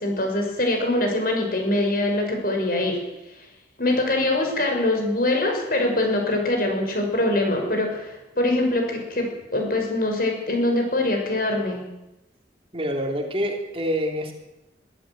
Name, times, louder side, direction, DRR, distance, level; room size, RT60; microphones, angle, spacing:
voice 1, 0.0-3.0 3.8-11.8, left 1 dB, 50° left, 2 dB, 6.3 m, -23 dB
voice 2, 12.7-14.3, equal, 30° right, 2 dB, 2.9 m, -26 dB
23.5 x 13.0 x 9.1 m, 0.96 s
head